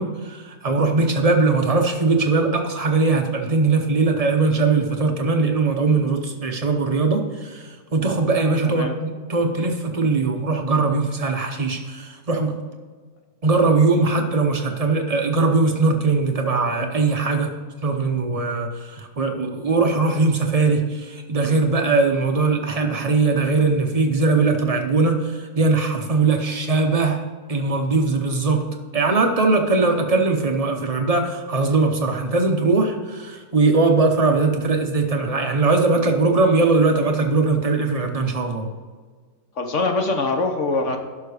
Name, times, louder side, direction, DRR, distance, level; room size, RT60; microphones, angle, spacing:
voice 1, 0.0-12.5 13.4-17.5 17.8-27.2 27.5-28.6 28.9-38.7, right 3 dB, 70° right, 3 dB, 0.3 m, -20 dB
voice 2, 39.6-41.0, left 3 dB, 50° left, 4 dB, 1.2 m, -23 dB
11.5 x 6.0 x 4.9 m, 1.5 s
omnidirectional pair, 2.0 m